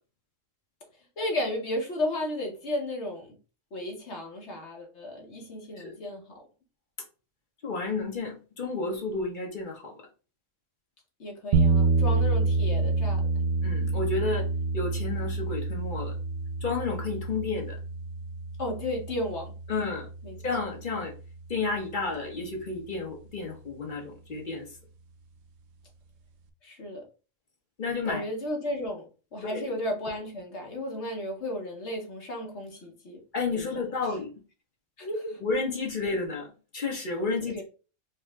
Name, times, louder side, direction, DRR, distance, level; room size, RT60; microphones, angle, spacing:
voice 1, 1.2-3.3 3.7-6.2 11.2-13.2 18.6-19.5 20.2-20.4 26.6-27.0 28.0-29.0 29.3-33.2 33.5-33.7 35.0-35.4 37.4-37.6, left 1 dB, 60° left, 1 dB, 1.3 m, -33 dB
voice 2, 7.6-9.9 13.6-14.5 14.7-16.1 16.6-17.8 19.7-20.1 20.4-21.1 21.5-24.6 27.8-28.2 29.5-29.6 33.3-34.3 35.4-37.6, left 3 dB, 40° left, 1 dB, 1.1 m, -31 dB
sound 1, 11.5-21.6, right 3 dB, 65° right, 0.8 m, -28 dB
4.6 x 2.1 x 3.5 m, 0.35 s
omnidirectional pair, 1.3 m